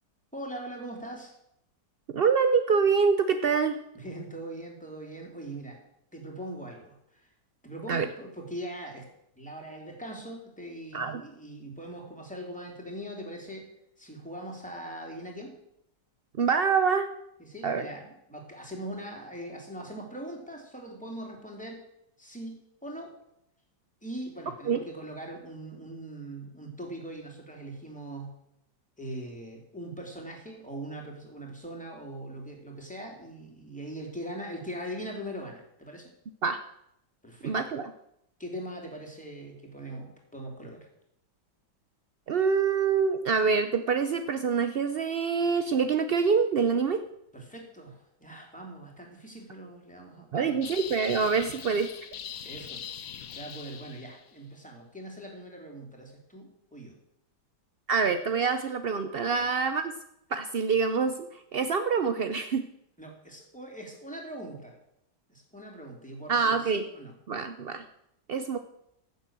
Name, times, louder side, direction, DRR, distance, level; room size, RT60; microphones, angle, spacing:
voice 1, 0.3-1.3 3.9-5.8 6.1-7.3 7.6-9.1 9.4-13.7 14.0-15.6 17.4-21.8 22.2-23.1 24.0-28.3 29.0-36.1 37.2-37.7 38.4-40.9 47.3-50.8 51.4-51.5 52.4-52.8 53.3-57.0 59.4-59.5 63.0-64.8 65.3-67.1, right 1 dB, 5° left, 0 dB, 3.0 m, -41 dB
voice 2, 2.1-3.8 7.9-8.1 10.9-11.2 16.4-17.1 17.6-17.9 24.7-24.8 36.4-36.6 37.4-37.9 42.3-47.0 50.3-51.9 57.9-59.8 60.3-62.7 66.3-66.8 67.3-67.8 68.3-68.6, right 5 dB, 70° right, 8 dB, 0.5 m, -25 dB
sound 1, 50.6-54.3, left 8 dB, 60° left, 1.2 m, -41 dB
15.0 x 7.3 x 7.4 m, 0.78 s
omnidirectional pair, 1.9 m